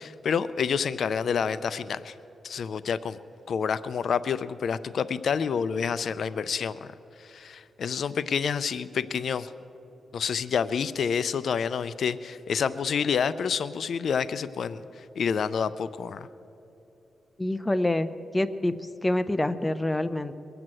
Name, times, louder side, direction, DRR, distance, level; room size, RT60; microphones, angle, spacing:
voice 1, 0.0-2.1 2.4-3.2 3.5-6.9 7.2-9.5 10.1-16.3, left 6 dB, 65° left, 15 dB, 0.4 m, -28 dB
voice 2, 17.4-18.8 19.0-20.3, left 1 dB, 15° left, 11 dB, 0.6 m, -26 dB
22.5 x 7.9 x 7.6 m, 2.9 s
wide cardioid pair, 110°, 0 cm